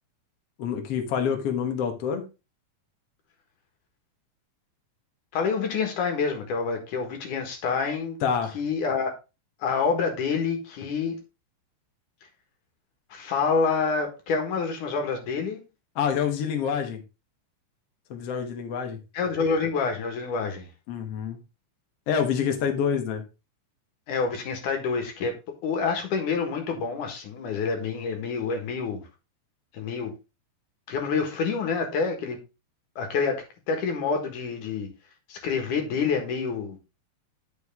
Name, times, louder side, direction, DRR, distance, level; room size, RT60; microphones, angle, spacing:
voice 1, 0.6-2.2 8.2-8.6 16.0-17.0 18.1-19.0 20.9-21.4 22.1-23.2, left 7 dB, 60° left, 2.1 m, -27 dB
voice 2, 5.3-8.2 8.5-9.1 9.6-11.2 13.1-15.6 19.1-20.7 24.1-25.3 25.6-29.0 29.7-30.1 30.9-32.4 33.0-34.9 35.3-36.8, left 5 dB, 80° left, 3.1 m, -27 dB
9.2 x 6.4 x 3.6 m
omnidirectional pair, 3.6 m